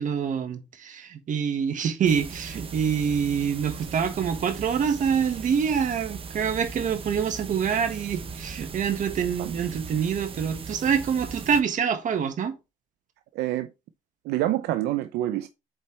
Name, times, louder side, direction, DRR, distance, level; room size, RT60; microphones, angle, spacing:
voice 1, 0.0-12.6, right 7 dB, 50° right, 1.5 m, -26 dB
sound 1, 2.0-11.6, right 5 dB, 35° right, 0.9 m, -39 dB
voice 2, 13.3-13.7 14.2-15.5, right 14 dB, 80° right, 0.5 m, -27 dB
7.8 x 4.2 x 3.2 m
cardioid pair, 110°, 17 cm